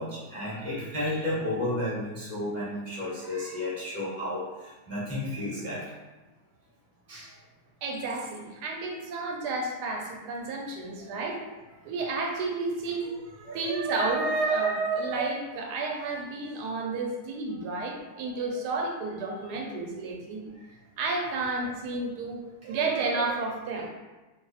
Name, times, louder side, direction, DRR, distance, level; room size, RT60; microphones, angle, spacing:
voice 1, 0.0-5.9 7.1-7.3 11.1-11.2 13.4-13.6 20.4-20.6 21.2-21.3, left 1 dB, 15° left, -9 dB, 0.5 m, -33 dB
voice 2, 7.8-11.4 11.8-20.4 21.0-23.9, right 3 dB, 80° right, 0 dB, 1.2 m, -31 dB
2.9 x 2.4 x 3.9 m, 1.1 s
omnidirectional pair, 1.8 m